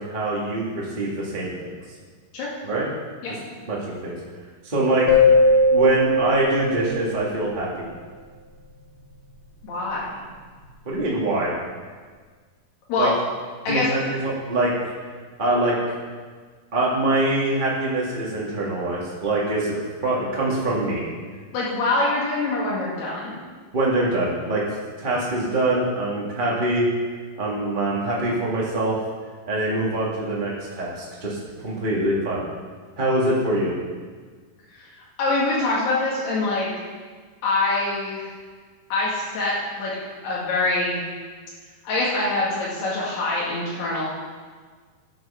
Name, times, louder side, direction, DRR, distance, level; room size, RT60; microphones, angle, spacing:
voice 1, 0.0-1.7 2.6-2.9 3.7-4.1 4.6-5.1 5.7-7.9 10.8-11.5 13.0-13.1 13.7-14.7 15.4-15.7 16.7-21.0 23.7-24.6 25.0-26.9 27.4-29.0 29.5-31.4 31.6-32.5 33.0-33.8, right 1 dB, 25° right, -6 dB, 1.0 m, -24 dB
sound 1, 5.1-7.3, left 2 dB, 35° left, 3.1 m, -18 dB
voice 2, 9.6-10.2 12.9-13.1 13.7-13.9 21.5-23.3 34.8-34.9 35.2-36.7 37.4-38.3 38.9-40.0 40.2-41.0 41.8-44.1, left 2 dB, 80° left, -6 dB, 4.0 m, -24 dB
11.5 x 9.3 x 5.6 m, 1.5 s
omnidirectional pair, 4.6 m